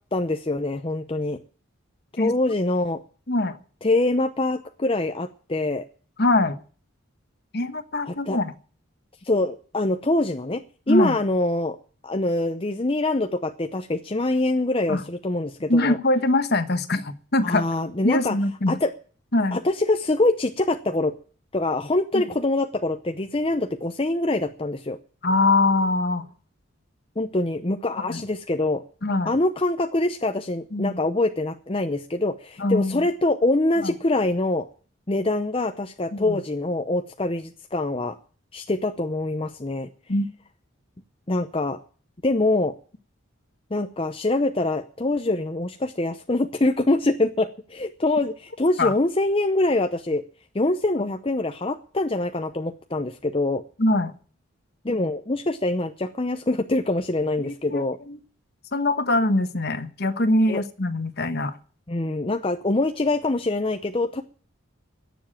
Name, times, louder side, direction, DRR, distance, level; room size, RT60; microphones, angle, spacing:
voice 1, 0.1-1.4 2.1-3.0 3.8-5.9 8.0-8.4 9.2-10.6 10.9-11.8 12.0-16.0 17.4-18.4 18.7-18.9 19.5-21.1 21.5-25.0 27.2-28.8 29.2-34.7 35.1-38.2 38.5-39.9 41.3-41.8 42.2-42.7 43.7-50.2 50.5-53.6 54.8-58.0 60.5-60.6 61.9-64.2, left 2 dB, 25° left, 6 dB, 0.7 m, -24 dB
voice 2, 6.2-6.6 7.5-8.5 10.9-11.2 14.9-15.0 15.7-17.6 18.0-18.8 19.3-19.6 25.2-26.2 28.1-28.2 29.0-29.3 30.7-31.0 32.6-33.0 33.8-33.9 36.1-36.4 40.1-40.3 48.8-48.9 53.8-54.1 57.4-58.2 58.7-61.5, left 2 dB, 50° left, 10 dB, 1.3 m, -23 dB
18.0 x 7.3 x 8.9 m, 0.42 s
head